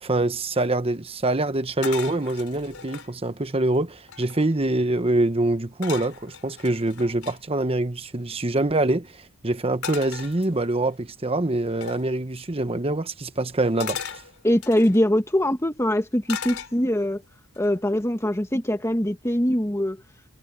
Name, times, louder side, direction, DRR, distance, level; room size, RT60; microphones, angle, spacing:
voice 1, 0.0-9.2 9.4-14.2, right 2 dB, 25° right, 1.0 m, -25 dB
sound 1, 1.8-3.1 3.7-3.8 4.0-4.6 5.8-7.4 9.8-10.9 11.8-12.1 13.8-15.0 16.3-17.1 17.5-17.9, left 7 dB, 70° left, 4.5 m, -37 dB
voice 2, 14.4-17.2 17.6-20.0, equal, 10° left, 1.4 m, -22 dB
head